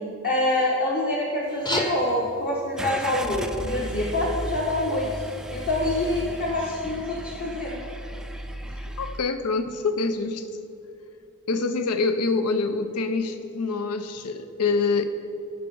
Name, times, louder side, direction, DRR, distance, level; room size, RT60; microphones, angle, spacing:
voice 1, 0.2-5.1 5.5-7.8, left 1 dB, 45° left, -4 dB, 1.2 m, -26 dB
sound 1, 1.4-6.4, equal, 20° left, 0.8 m, -37 dB
Car / Engine starting, 2.8-9.2, right 1 dB, 5° right, 0.3 m, -35 dB
voice 2, 8.8-10.5 11.5-15.0, left 4 dB, 85° left, 10 dB, 0.6 m, -26 dB
15.5 x 5.5 x 5.4 m, 2.6 s
head